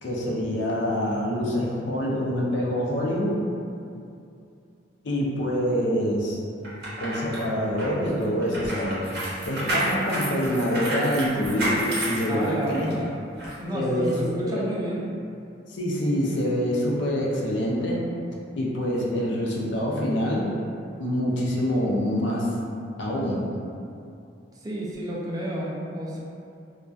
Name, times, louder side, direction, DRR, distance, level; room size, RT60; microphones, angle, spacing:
voice 1, 0.0-3.4 5.0-6.4 7.0-9.0 9.4-12.9 13.7-14.7 15.7-18.0 18.6-20.5 21.0-22.5 23.0-23.4, equal, 70° left, -4 dB, 0.5 m, -26 dB
sound 1, 6.6-12.9 13.4-13.5, right 1 dB, 60° right, 0.6 m, -30 dB
voice 2, 12.2-13.1 13.6-15.0 24.6-26.2, equal, 20° right, -5 dB, 0.3 m, -30 dB
2.5 x 2.2 x 2.3 m, 2.5 s
head